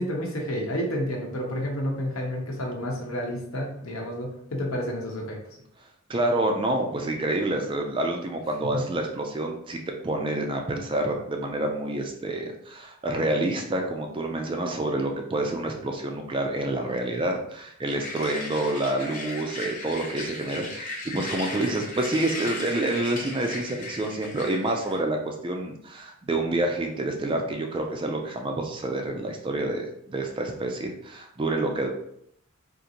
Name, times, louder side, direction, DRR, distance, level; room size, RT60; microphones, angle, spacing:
voice 1, 0.0-5.4 8.7-8.8, equal, 70° left, -1 dB, 0.9 m, -30 dB
voice 2, 6.1-31.9, right 2 dB, 25° right, 3 dB, 0.3 m, -28 dB
sound 1, 17.9-25.0, left 2 dB, 35° left, 0.7 m, -37 dB
3.8 x 2.5 x 2.8 m, 0.72 s
head